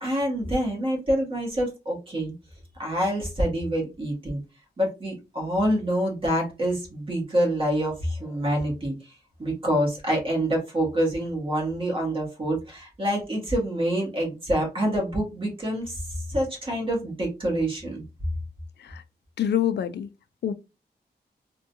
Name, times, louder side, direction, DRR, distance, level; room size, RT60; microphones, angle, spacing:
voice 1, 0.0-2.3 2.8-4.4 4.8-8.9 9.4-16.0 16.3-18.0, right 1 dB, 30° right, 1.4 m, -26 dB
voice 2, 19.4-20.1 20.4-20.5, left 9 dB, 80° left, 0.4 m, -25 dB
3.6 x 2.3 x 2.6 m
wide cardioid pair, 170°, 17 cm